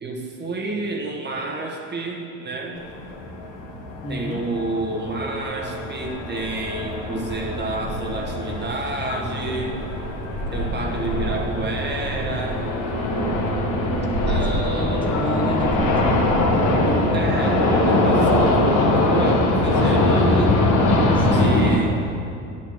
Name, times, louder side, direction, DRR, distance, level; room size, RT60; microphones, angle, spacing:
voice 1, 0.0-2.8 4.1-9.8 10.5-12.7 14.3-15.0 17.1-20.7 21.3-22.1, right 2 dB, 25° right, 0 dB, 1.3 m, -30 dB
sound 1, 2.8-21.8, left 1 dB, 50° left, 1.5 m, -22 dB
voice 2, 4.0-4.5 14.5-17.5 20.9-21.5, left 1 dB, 10° left, -1 dB, 1.2 m, -30 dB
9.8 x 4.4 x 6.3 m, 2.6 s
hypercardioid pair, 80°, 38 cm